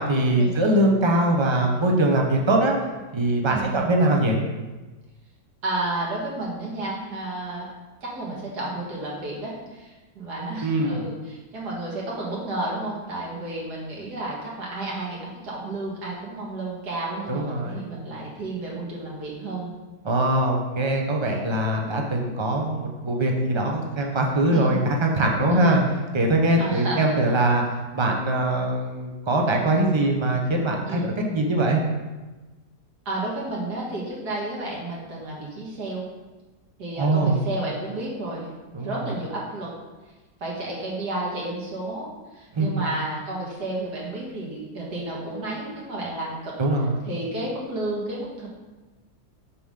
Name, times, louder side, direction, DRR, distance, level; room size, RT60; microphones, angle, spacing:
voice 1, 0.0-2.7 3.1-4.4 10.6-11.1 17.3-17.9 20.0-25.8 26.1-27.6 27.9-31.8 37.0-37.4 38.7-39.0 42.5-42.8 46.6-47.1, right 1 dB, 40° right, 1 dB, 0.4 m, -22 dB
voice 2, 3.5-3.9 5.6-7.7 8.0-19.7 24.5-24.8 25.5-25.8 26.6-27.2 30.9-31.2 33.1-36.1 36.8-38.5 38.8-39.7 40.4-46.5 47.0-48.5, right 2 dB, 70° right, -4 dB, 2.2 m, -31 dB
6.8 x 5.4 x 3.7 m, 1.2 s
omnidirectional pair, 1.8 m